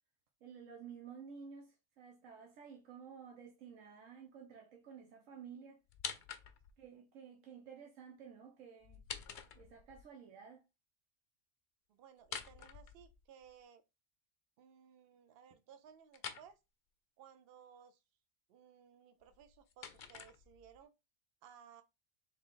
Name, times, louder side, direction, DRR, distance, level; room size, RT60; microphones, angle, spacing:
voice 1, 0.4-5.8 6.8-9.0 9.5-10.6, right 6 dB, 90° right, 1.2 m, -53 dB
sound 1, 5.9-6.8 8.8-10.0 12.2-13.5 16.1-16.5 19.2-20.8, left 7 dB, 60° left, 0.5 m, -47 dB
voice 2, 11.9-13.8 14.6-16.6 17.2-18.0 18.5-20.9 21.4-21.8, right 8 dB, 55° right, 0.7 m, -60 dB
3.9 x 3.1 x 3.7 m
omnidirectional pair, 1.3 m